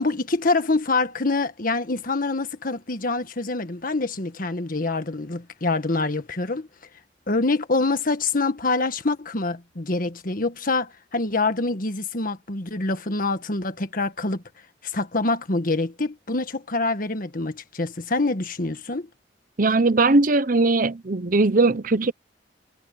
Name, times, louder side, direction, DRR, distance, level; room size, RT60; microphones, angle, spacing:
voice 1, 0.0-6.7 7.3-14.4 14.8-19.1, left 3 dB, 50° left, 1.6 m, -25 dB
voice 2, 19.6-22.1, right 3 dB, 50° right, 0.9 m, -19 dB
head